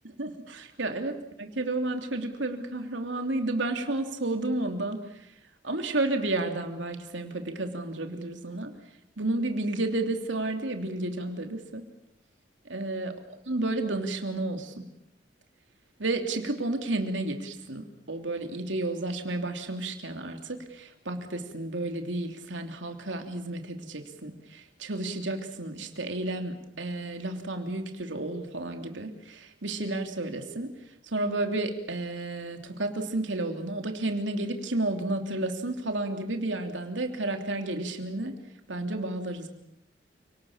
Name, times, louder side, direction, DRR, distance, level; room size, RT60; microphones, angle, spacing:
voice 1, 0.2-1.1 1.4-5.3 5.6-8.7 9.2-11.9 12.6-13.1 13.5-14.8 16.0-30.7 31.0-38.3 38.7-39.5, right 2 dB, 90° right, 5 dB, 3.0 m, -31 dB
29.0 x 19.5 x 7.3 m, 0.81 s
head